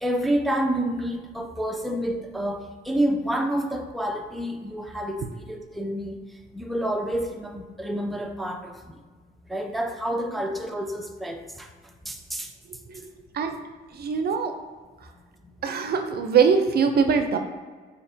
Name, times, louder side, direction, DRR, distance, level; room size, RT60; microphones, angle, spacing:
voice 1, 0.0-6.2 6.5-8.8 9.5-11.7 12.1-12.5, right 1 dB, ahead, 3 dB, 0.5 m, -28 dB
voice 2, 12.9-13.6 13.9-14.5 15.6-17.4, right 6 dB, 50° right, 6 dB, 0.5 m, -22 dB
6.5 x 2.8 x 2.6 m, 1.4 s
cardioid pair, 90°, 20 cm